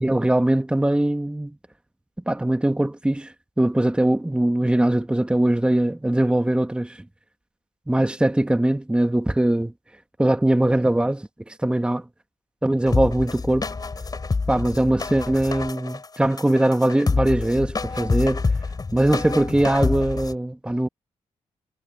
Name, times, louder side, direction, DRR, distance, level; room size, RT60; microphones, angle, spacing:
voice 1, 0.0-1.5 2.3-7.0 7.9-9.7 10.2-12.0 12.6-13.7 14.5-18.4 18.9-20.9, right 1 dB, 10° right, 1.5 m, -21 dB
sound 1, 12.9-20.3, left 4 dB, 35° left, 5.1 m, -27 dB
cardioid pair, 80°, 12 cm